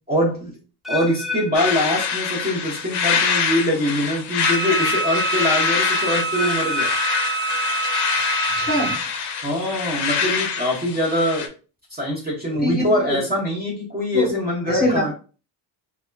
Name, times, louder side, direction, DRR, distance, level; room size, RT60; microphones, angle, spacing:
voice 1, 0.1-0.6 0.9-6.9 9.4-11.5 11.9-15.1, left 1 dB, 20° right, -4 dB, 0.8 m, -23 dB
sound 1, 0.8-2.9 3.1-3.6 4.2-4.3 6.3-8.3 8.6-9.0 9.7-9.8, left 4 dB, ahead, 0.3 m, -32 dB
sound 2, 1.5-11.5, left 6 dB, 60° left, 0.6 m, -25 dB
Wind instrument woodwind instrument, 4.4-9.0, right 3 dB, 80° right, 0.7 m, -26 dB
voice 2, 8.6-8.9 12.6-13.2 14.1-14.3 14.7-15.1, left 1 dB, 20° left, -2 dB, 1.2 m, -23 dB
2.8 x 2.3 x 2.2 m, 0.35 s
cardioid pair, 110°, 46 cm